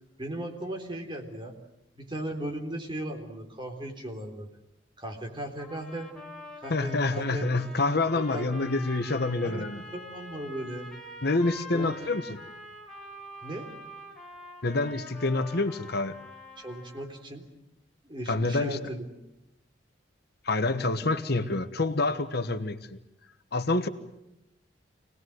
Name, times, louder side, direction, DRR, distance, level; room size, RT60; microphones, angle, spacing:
voice 1, 0.2-1.6 1.9-4.6 5.0-6.1 6.6-7.5 8.1-8.6 9.4-10.9 11.7-12.1 13.4-13.7 16.6-17.4 18.0-19.1, right 1 dB, 25° right, 4 dB, 3.7 m, -37 dB
sound 1, 5.6-17.2, left 1 dB, 5° left, 4.4 m, -45 dB
voice 2, 6.7-9.8 11.2-12.4 14.6-16.1 18.3-18.8 20.4-23.0 23.5-23.9, left 2 dB, 60° left, 10 dB, 1.2 m, -27 dB
26.0 x 19.5 x 7.9 m, 0.89 s
head